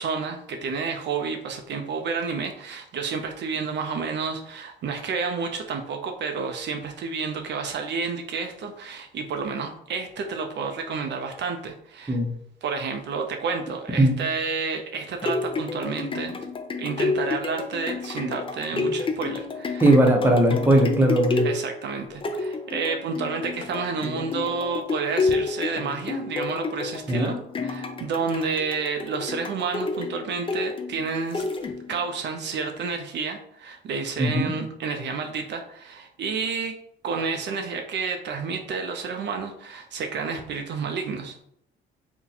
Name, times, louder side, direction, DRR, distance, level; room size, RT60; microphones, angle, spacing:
voice 1, 0.0-12.2 12.6-16.4 16.8-19.9 21.4-31.5 31.9-36.7 37.0-41.4, right 5 dB, 60° right, 4 dB, 0.5 m, -30 dB
sound 1, 14.9-32.1 32.6-32.7, left 3 dB, 25° left, 0.4 m, -30 dB
voice 2, 19.8-21.5 27.1-27.3 34.2-34.5, right 1 dB, 10° right, 1 dB, 0.7 m, -19 dB
2.8 x 2.2 x 3.9 m, 0.71 s
cardioid pair, 90°, 20 cm